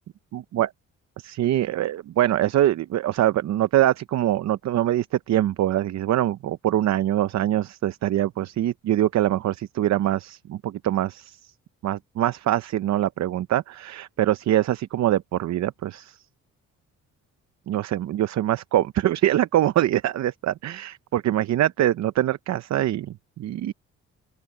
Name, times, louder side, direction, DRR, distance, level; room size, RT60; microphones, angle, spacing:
voice 1, 0.3-0.7 1.2-11.4 11.8-16.2 17.7-23.7, right 12 dB, 65° right, 0.7 m, -24 dB
open air
cardioid pair, 90°, 30 cm